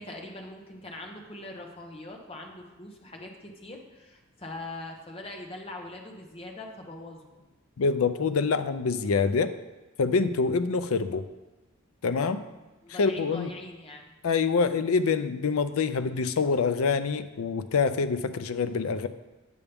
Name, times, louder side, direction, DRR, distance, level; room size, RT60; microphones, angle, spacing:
voice 1, 0.0-7.5 12.8-14.1, left 2 dB, 25° left, 1 dB, 1.0 m, -42 dB
voice 2, 7.8-9.5 10.0-11.2 12.0-12.4 13.0-13.5 14.2-19.1, left 5 dB, 80° left, 11 dB, 0.5 m, -26 dB
8.4 x 7.0 x 3.5 m, 1.1 s
head